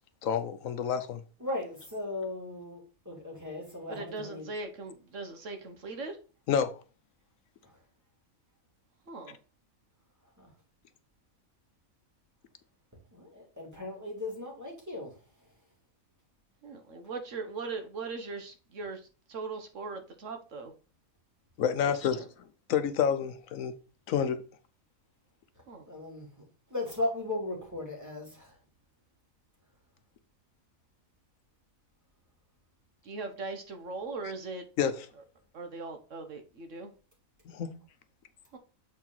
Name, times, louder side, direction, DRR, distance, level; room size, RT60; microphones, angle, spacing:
voice 1, 0.2-1.2 6.5-6.7 21.6-22.2 22.7-23.7 24.1-24.4 34.8-35.1 37.5-37.7, left 8 dB, 75° left, 1.1 m, -28 dB
voice 2, 1.4-4.5 10.4-10.5 13.1-15.1 25.9-26.3 26.7-28.5, left 2 dB, 10° right, 2.9 m, -37 dB
voice 3, 3.9-6.2 9.1-9.3 16.6-19.0 19.3-20.7 21.8-21.9 22.2-22.3 25.7-25.8 33.0-34.6 35.5-36.9 38.5-38.6, right 3 dB, 65° right, 1.3 m, -39 dB
7.3 x 4.5 x 3.9 m
omnidirectional pair, 1.4 m